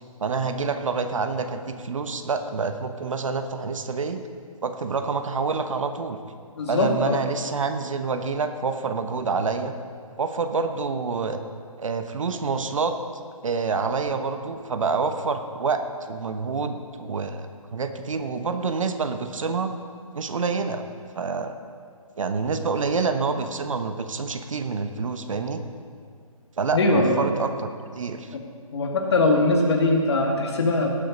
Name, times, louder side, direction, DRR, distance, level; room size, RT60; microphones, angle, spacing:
voice 1, 0.2-4.2 4.6-6.2 6.7-9.7 10.2-11.4 11.8-13.0 13.4-19.7 20.1-20.8 21.1-21.5 22.2-25.6 26.6-27.7 28.0-28.4, right 4 dB, 60° right, 8 dB, 1.0 m, -27 dB
voice 2, 6.6-7.2 26.7-27.2 28.7-31.0, left 2 dB, 45° left, 1 dB, 2.1 m, -21 dB
17.5 x 7.7 x 5.2 m, 2.1 s
figure-of-eight pair, 150°, 18 cm